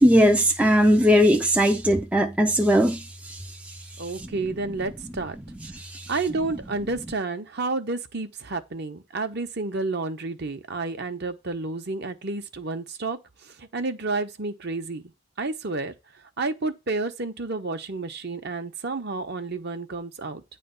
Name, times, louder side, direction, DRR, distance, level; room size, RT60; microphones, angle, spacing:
voice 1, 0.0-4.4 5.7-6.1, equal, 5° right, 0.5 m, -20 dB
voice 2, 4.0-5.4 6.1-15.0 15.4-15.9 16.4-20.4, right 3 dB, 50° right, 1.0 m, -30 dB
9.6 x 3.3 x 6.8 m
head